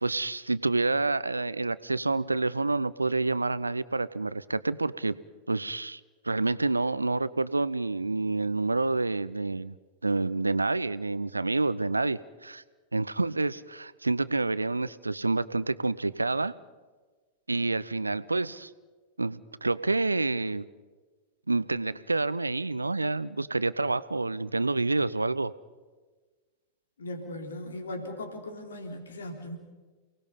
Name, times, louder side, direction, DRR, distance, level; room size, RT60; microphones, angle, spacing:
voice 1, 0.0-5.2 5.5-6.0 6.2-9.7 10.0-12.6 12.9-16.5 17.5-18.7 19.2-20.6 21.5-25.5, right 3 dB, 80° right, 17 dB, 0.6 m, -28 dB
voice 2, 27.0-29.6, left 1 dB, 70° left, 4 dB, 3.5 m, -38 dB
29.0 x 19.0 x 5.5 m, 1.3 s
figure-of-eight pair, 90°, 0 cm